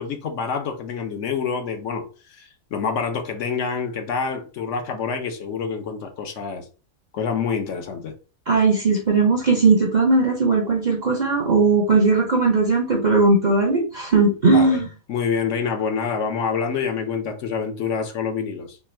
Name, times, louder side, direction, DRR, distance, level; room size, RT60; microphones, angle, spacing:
voice 1, 0.0-6.6 7.1-8.1 14.5-14.8 15.1-18.8, left 6 dB, 65° left, 1.0 m, -27 dB
voice 2, 8.5-14.9, right 3 dB, 45° right, 0.6 m, -18 dB
3.4 x 2.2 x 4.2 m
omnidirectional pair, 1.5 m